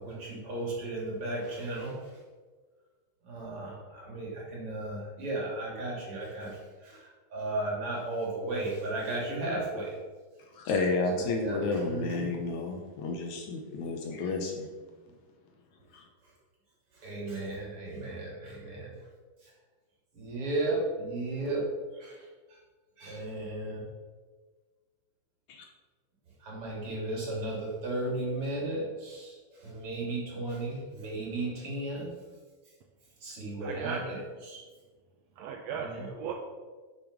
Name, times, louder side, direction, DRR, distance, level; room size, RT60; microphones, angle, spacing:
voice 1, 0.0-2.2 3.2-9.9 10.7-10.9 11.1-12.3 16.9-19.0 19.4-19.5 20.1-21.6 21.9-22.6 23.0-23.9 26.4-32.1 33.2-34.6 35.8-36.1, right 2 dB, 45° right, -3 dB, 3.4 m, -35 dB
voice 2, 10.6-14.7 15.9-16.0 25.5-25.6, left 3 dB, 70° left, 2 dB, 2.1 m, -31 dB
voice 3, 33.6-34.2 35.4-36.3, right 6 dB, 85° right, 3 dB, 1.5 m, -37 dB
7.1 x 7.0 x 6.2 m, 1.4 s
omnidirectional pair, 3.9 m